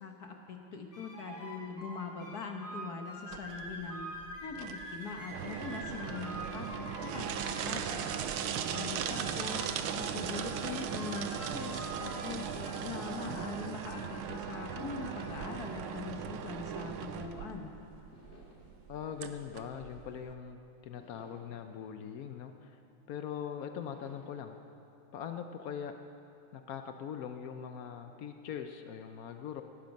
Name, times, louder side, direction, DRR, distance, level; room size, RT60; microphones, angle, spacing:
voice 1, 0.0-4.1 4.4-8.1 8.7-17.7, left 4 dB, 55° left, 3 dB, 1.4 m, -42 dB
sound 1, 0.9-15.9, right 1 dB, 10° left, 3.3 m, -46 dB
sound 2, 3.3-20.3, right 8 dB, 85° right, 1.6 m, -38 dB
sound 3, 12.4-14.7 15.3-17.5 18.1-20.4 21.0-23.2 23.8-24.3, left 1 dB, 35° left, 2.1 m, -61 dB
voice 2, 18.9-22.8 23.1-24.6 25.1-25.9 26.5-29.6, left 8 dB, 90° left, 7 dB, 0.7 m, -41 dB
18.0 x 12.0 x 5.2 m, 2.7 s
omnidirectional pair, 2.3 m